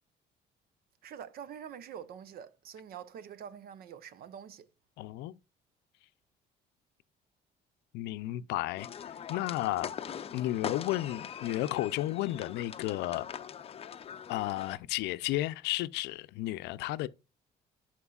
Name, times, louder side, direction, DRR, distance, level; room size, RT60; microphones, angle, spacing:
voice 1, 1.0-4.7, right 8 dB, 60° right, 0.8 m, -46 dB
voice 2, 5.0-5.3 7.9-9.9 10.3-13.3 14.3-17.1, left 16 dB, 85° left, 0.5 m, -33 dB
sound 1, 8.8-14.8, left 8 dB, 35° left, 0.5 m, -42 dB
11.0 x 4.5 x 2.4 m
cardioid pair, 110°, 17 cm